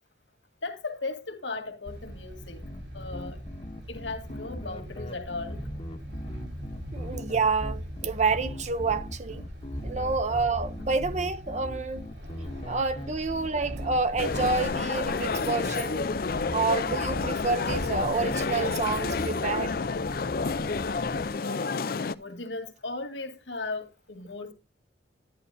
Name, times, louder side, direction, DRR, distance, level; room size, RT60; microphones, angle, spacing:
voice 1, 0.6-2.6 2.9-3.4 3.9-5.6 21.3-24.5, left 3 dB, 85° left, 2.0 m, -37 dB
sound 1, 1.8-21.3, equal, 70° right, 4.0 m, -40 dB
sound 2, 2.6-21.1, left 1 dB, 30° left, 0.9 m, -41 dB
voice 2, 6.9-9.4 9.8-12.1 12.7-16.1 16.5-19.7, right 4 dB, 40° right, 0.6 m, -28 dB
sound 3, 14.2-22.1, left 4 dB, 50° left, 0.4 m, -30 dB
11.0 x 10.0 x 2.7 m
head